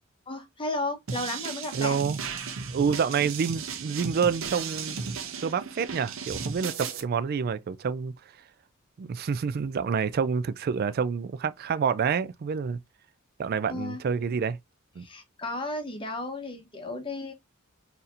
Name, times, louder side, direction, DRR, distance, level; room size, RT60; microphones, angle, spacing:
voice 1, 0.3-2.0 13.7-14.0 15.0-17.3, left 2 dB, 25° left, 0.9 m, -34 dB
sound 1, 1.1-7.0, right 5 dB, 65° right, 0.7 m, -35 dB
voice 2, 1.7-2.2 2.7-5.1 5.4-8.1 9.0-12.8 13.4-14.6 15.0-15.1, right 6 dB, 45° right, 0.3 m, -28 dB
4.1 x 2.7 x 2.5 m
head